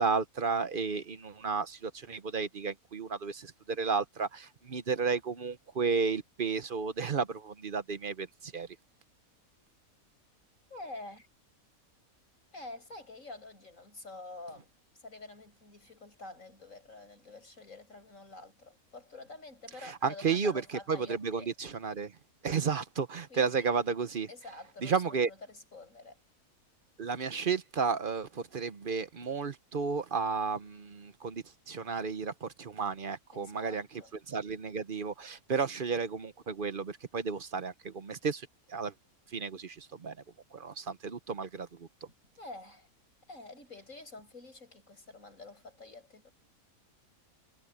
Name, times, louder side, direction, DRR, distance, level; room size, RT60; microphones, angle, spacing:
voice 1, 0.0-8.7 20.0-20.6 20.9-22.1 22.4-24.3 24.8-25.3 27.0-33.9 34.3-38.9 39.3-40.1 40.5-41.9, right 5 dB, 45° right, 0.9 m, -32 dB
voice 2, 10.7-11.3 12.5-21.5 23.3-23.7 24.3-26.2 33.3-34.1 42.4-42.9 43.3-46.3, left 2 dB, 65° left, 8.4 m, -48 dB
omnidirectional pair, 1.5 m